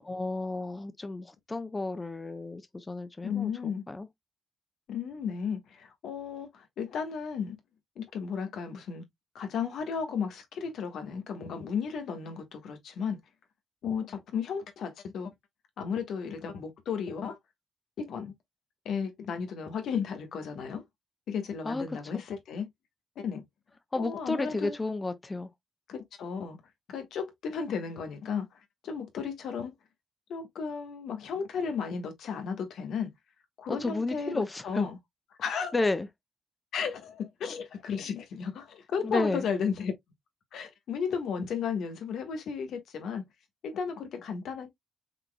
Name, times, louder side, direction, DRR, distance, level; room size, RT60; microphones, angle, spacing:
voice 1, 0.1-4.1 21.6-21.8 22.1-22.2 23.9-25.5 33.7-34.9 35.7-36.1 39.0-39.4, left 2 dB, 30° left, 0.9 m, -32 dB
voice 2, 3.2-3.8 4.9-7.6 8.0-9.0 9.3-13.2 13.8-15.3 15.8-17.4 18.0-18.3 18.8-20.8 21.3-22.7 23.2-23.4 24.0-24.8 25.9-26.6 26.9-29.7 30.3-33.1 33.6-35.0 35.4-35.7 36.7-39.9 40.5-43.2 43.6-44.7, left 6 dB, 75° left, 1.4 m, -34 dB
5.7 x 3.8 x 2.2 m
hypercardioid pair, 45°, 0 cm